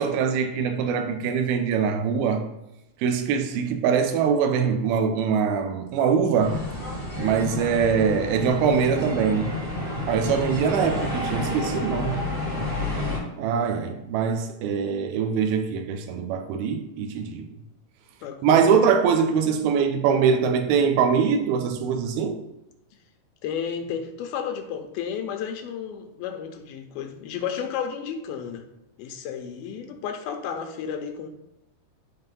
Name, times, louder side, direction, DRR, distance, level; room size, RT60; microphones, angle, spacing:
voice 1, 0.0-2.5 3.0-6.6 7.2-9.6 10.1-12.2 13.4-17.5 18.4-22.4, right 6 dB, 80° right, 2.7 m, -23 dB
sound 1, 6.4-13.2, left 2 dB, 20° right, 1.9 m, -30 dB
voice 2, 18.2-18.8 23.4-28.6 29.0-31.3, left 7 dB, 80° left, 2.7 m, -32 dB
11.5 x 3.9 x 5.3 m
omnidirectional pair, 4.5 m